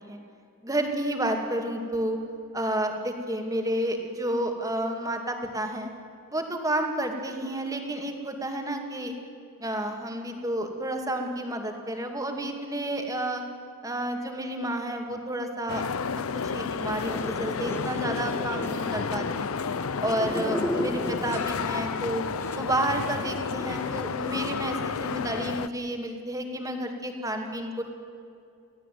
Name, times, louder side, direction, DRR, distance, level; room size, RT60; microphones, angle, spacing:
voice 1, 0.6-2.2 2.5-5.9 6.3-9.1 9.6-13.4 13.8-16.2 16.5-19.5 20.0-22.2 22.5-27.8, right 1 dB, 15° right, 4 dB, 2.4 m, -30 dB
sound 1, 15.7-25.7, left 5 dB, 80° left, 0.6 m, -31 dB
sound 2, 17.1-24.5, left 1 dB, 10° left, 1.4 m, -36 dB
24.0 x 16.5 x 9.3 m, 2.6 s
head